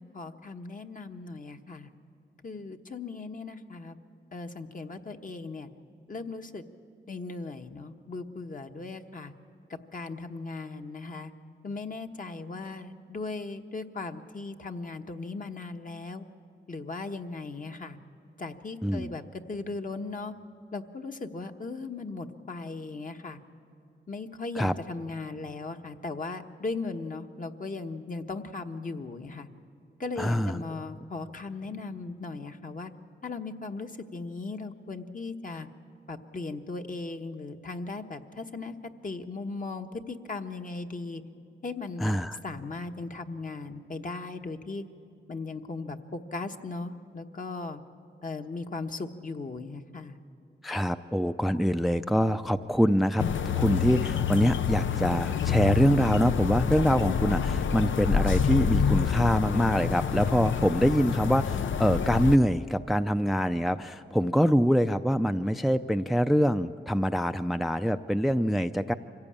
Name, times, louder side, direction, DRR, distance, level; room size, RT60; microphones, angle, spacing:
voice 1, 0.0-1.9 2.4-4.0 4.3-5.7 6.1-6.6 7.1-9.3 9.9-11.3 11.6-16.2 16.7-18.0 18.4-20.3 20.7-23.4 24.1-29.5 30.0-32.9 33.2-35.7 36.1-38.7 39.0-41.2 41.6-42.1 42.4-44.8 45.3-47.8 48.2-50.2, left 3 dB, 45° left, 5 dB, 1.2 m, -37 dB
voice 2, 18.8-19.1 24.6-24.7 30.2-30.6 42.0-42.4 50.6-53.2 53.5-68.9, equal, ahead, 9 dB, 0.4 m, -25 dB
sound 1, 53.2-62.4, left 7 dB, 75° left, 0.6 m, -27 dB
25.0 x 16.0 x 8.7 m, 2.6 s
cardioid pair, 65°, 20 cm